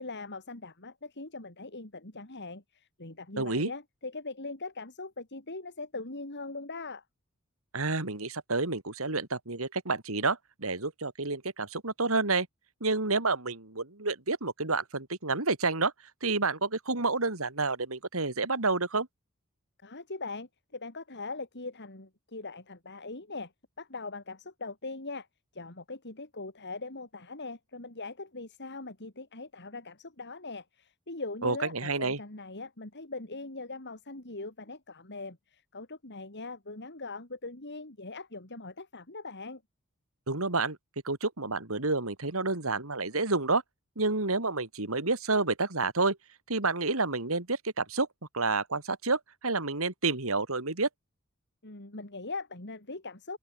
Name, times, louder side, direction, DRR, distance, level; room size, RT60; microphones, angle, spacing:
voice 1, 0.0-7.0 19.8-23.5 23.8-25.3 25.5-39.6 51.6-53.4, left 3 dB, 55° left, 3.9 m, -41 dB
voice 2, 3.4-3.7 7.7-12.5 12.8-15.9 16.2-19.1 31.4-32.2 40.3-40.8 41.0-43.6 44.0-46.2 46.5-48.1 48.3-50.9, right 3 dB, 70° right, 3.1 m, -29 dB
open air
head